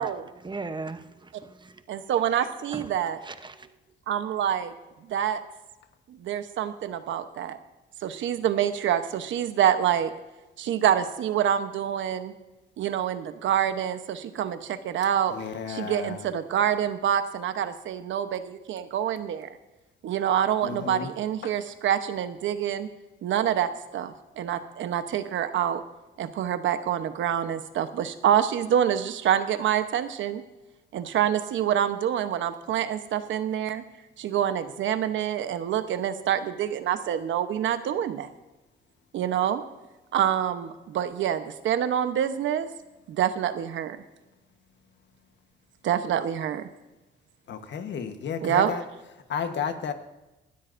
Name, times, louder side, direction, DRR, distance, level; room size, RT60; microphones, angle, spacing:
voice 1, 0.0-1.8 2.7-2.9 3.2-3.7, right 3 dB, 25° right, 0.9 m, -38 dB
voice 2, 1.9-3.2 4.1-4.7 5.1-5.4 6.1-7.6 8.0-10.1 10.6-12.3 12.8-15.3 15.7-19.5 20.0-22.9 23.2-25.8 26.2-30.4 30.9-33.8 34.2-38.3 39.1-39.6 40.1-42.7 43.1-44.0 45.8-46.6 48.4-48.7, right 10 dB, 75° right, 1.0 m, -26 dB
voice 3, 15.3-16.3 20.6-21.1 21.4-21.5 47.5-48.8 49.3-49.9, left 7 dB, 65° left, 1.2 m, -32 dB
19.0 x 13.0 x 2.6 m
cardioid pair, 90°, 20 cm